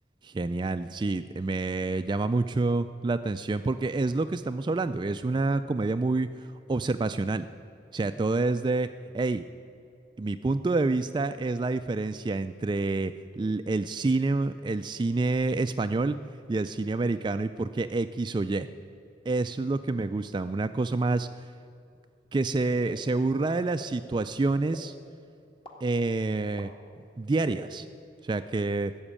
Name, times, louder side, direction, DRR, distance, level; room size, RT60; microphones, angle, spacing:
voice 1, 0.2-7.5 7.9-9.4 10.2-16.2 16.5-18.7 19.3-21.3 22.3-24.9 25.8-26.7 27.2-27.9 28.2-28.9, right 3 dB, 25° right, 10 dB, 0.3 m, -28 dB
sound 1, 22.9-23.0 23.8-23.9 24.7-24.8 25.6-25.7 26.6-26.7 27.5-27.6, equal, 30° left, 1.8 m, -42 dB
14.0 x 7.2 x 9.9 m, 2.6 s
head